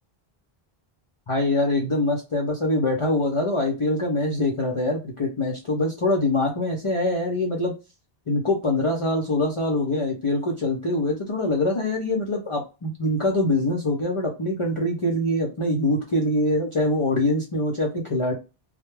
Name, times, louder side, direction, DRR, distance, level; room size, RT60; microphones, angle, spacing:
voice 1, 1.3-7.7 8.3-18.3, left 1 dB, 40° left, -1 dB, 0.5 m, -24 dB
2.2 x 2.0 x 3.1 m, 0.28 s
omnidirectional pair, 1.0 m